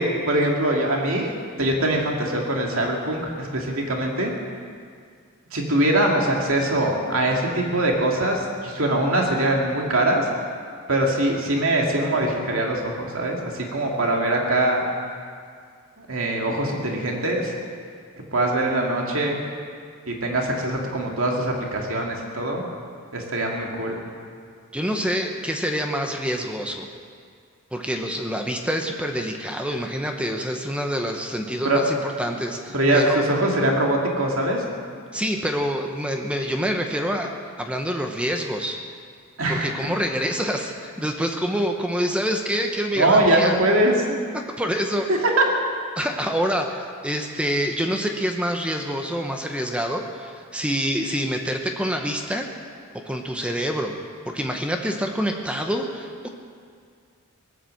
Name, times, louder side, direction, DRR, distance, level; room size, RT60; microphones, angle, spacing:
voice 1, 0.0-4.3 5.5-10.2 10.9-14.8 16.0-17.5 18.3-19.4 20.1-22.6 23.1-24.0 31.6-31.8 32.7-34.6 39.4-39.7 43.0-44.2 45.1-45.5, right 1 dB, 70° right, 0 dB, 2.5 m, -22 dB
voice 2, 24.7-26.9 27.7-33.2 35.1-37.3 37.6-38.8 39.5-43.6 44.3-45.1 46.0-52.5 52.9-54.0 54.3-56.3, equal, 5° right, 3 dB, 0.9 m, -26 dB
19.0 x 10.0 x 7.7 m, 2.1 s
head